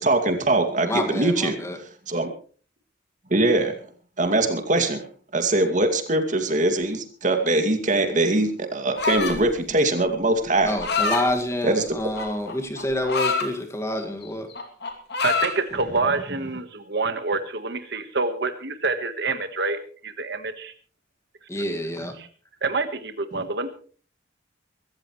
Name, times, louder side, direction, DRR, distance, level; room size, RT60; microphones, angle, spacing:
voice 1, 0.0-1.6 2.1-2.3 3.3-3.7 4.2-5.0 5.3-10.7 11.6-11.8 23.3-23.4, right 2 dB, 40° right, 6 dB, 2.3 m, -22 dB
voice 2, 0.9-1.8 10.6-14.5 21.5-22.2, left 1 dB, 15° left, 5 dB, 2.0 m, -27 dB
sound 1, 9.0-9.5 10.5-11.2 12.1-13.5 14.0-14.2 14.5-15.6, left 4 dB, 60° left, 2.8 m, -25 dB
voice 3, 15.2-20.7 22.2-22.3 22.6-23.7, right 3 dB, 60° right, 9 dB, 1.4 m, -27 dB
24.0 x 14.0 x 3.2 m, 0.42 s
head